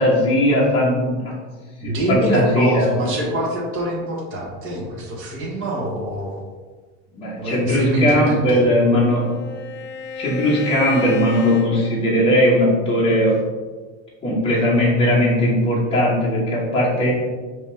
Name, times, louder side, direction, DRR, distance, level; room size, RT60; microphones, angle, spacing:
voice 1, 0.0-1.3 1.8-2.9 7.1-9.4 10.1-13.4 14.2-17.1, equal, 15° left, -6 dB, 1.2 m, -18 dB
voice 2, 1.8-6.4 7.4-8.6, right 1 dB, 30° right, -3 dB, 1.2 m, -24 dB
Bowed string instrument, 8.3-12.6, left 5 dB, 80° left, 0.7 m, -33 dB
5.1 x 3.0 x 3.4 m, 1.4 s
supercardioid pair, 150°, 38 cm